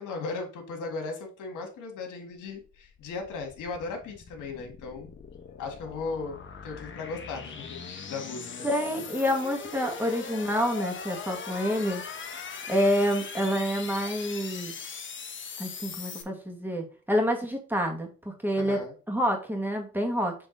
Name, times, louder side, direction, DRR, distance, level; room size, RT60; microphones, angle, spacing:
voice 1, 0.0-5.1 5.6-6.4 6.6-8.7 18.5-18.9, left 4 dB, 85° left, 3 dB, 1.8 m, -37 dB
sound 1, 2.6-16.2, left 6 dB, 40° left, 1.1 m, -40 dB
voice 2, 8.6-12.0 12.7-15.0 15.6-18.8 19.1-20.3, equal, 5° right, 2 dB, 1.9 m, -28 dB
6.9 x 3.5 x 3.9 m, 0.37 s
cardioid pair, 90°, 30 cm